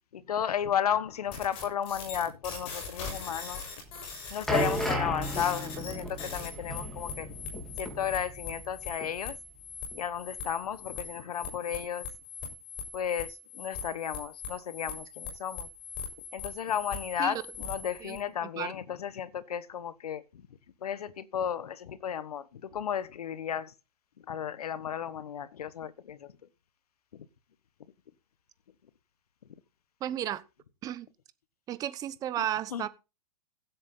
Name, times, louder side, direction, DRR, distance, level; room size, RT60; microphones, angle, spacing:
voice 1, 0.1-3.6 4.3-9.4 9.9-12.1 12.9-15.7 16.3-20.4 20.8-23.7 24.3-26.3 32.4-32.5 32.7-32.9, left 8 dB, 80° left, 1.4 m, -34 dB
sound 1, 1.3-18.2, left 5 dB, 30° left, 6.7 m, -41 dB
sound 2, 3.9-8.8 9.0-9.2 9.9-10.0, equal, ahead, 3.2 m, -34 dB
voice 2, 18.0-18.7 30.0-30.4 30.8-31.1 31.7-32.9, right 11 dB, 20° right, 0.9 m, -34 dB
15.5 x 8.6 x 3.9 m
hypercardioid pair, 150°, 19 cm